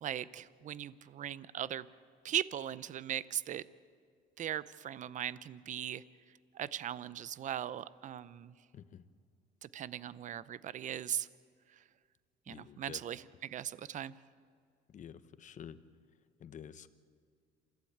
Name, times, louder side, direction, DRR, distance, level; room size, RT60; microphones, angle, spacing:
voice 1, 0.0-1.9 2.2-3.6 4.4-6.0 6.5-8.5 9.6-11.3 11.7-11.8 12.5-14.1, right 10 dB, 50° right, 18 dB, 0.7 m, -39 dB
voice 2, 12.5-13.0 14.9-15.8 16.4-16.9, left 8 dB, 45° left, 13 dB, 1.1 m, -49 dB
27.5 x 15.5 x 8.7 m, 2.1 s
cardioid pair, 110°, 17 cm